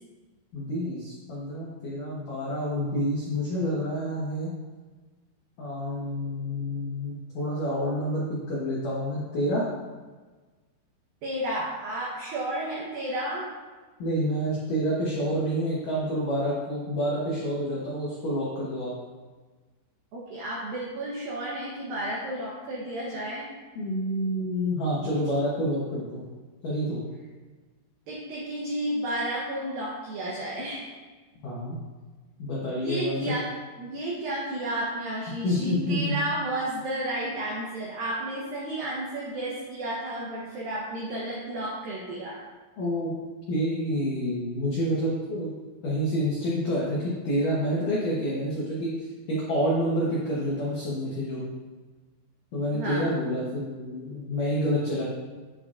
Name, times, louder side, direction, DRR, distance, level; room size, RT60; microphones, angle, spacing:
voice 1, 0.5-4.5 5.6-9.7 14.0-18.9 23.8-26.2 26.6-27.0 31.4-31.8 32.4-33.3 35.4-36.2 42.8-43.1 43.5-45.5 45.8-51.4 52.5-55.0, equal, 85° left, -6 dB, 1.8 m, -28 dB
voice 2, 11.2-13.5 20.1-23.5 28.1-30.9 32.8-33.5 33.8-42.4 52.7-53.2, right 1 dB, 90° right, -4 dB, 2.0 m, -32 dB
8.6 x 8.1 x 2.5 m, 1.3 s
omnidirectional pair, 5.6 m